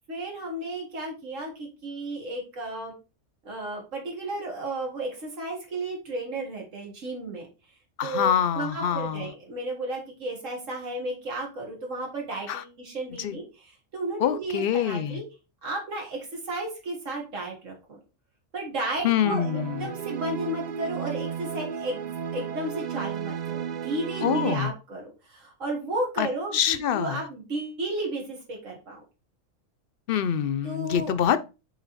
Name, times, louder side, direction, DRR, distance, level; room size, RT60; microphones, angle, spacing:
voice 1, 0.1-2.9 3.4-7.5 8.0-15.2 15.6-18.0 18.5-29.0 30.6-31.2, right 2 dB, 80° right, 2.2 m, -33 dB
voice 2, 8.0-9.3 12.5-12.6 13.2-13.4 14.2-15.2 19.0-19.9 24.2-24.7 26.2-26.3 26.5-27.2 30.1-31.4, left 9 dB, 60° left, 0.7 m, -25 dB
sound 1, 19.2-24.7, right 8 dB, 60° right, 0.4 m, -33 dB
7.1 x 3.7 x 4.1 m
omnidirectional pair, 1.3 m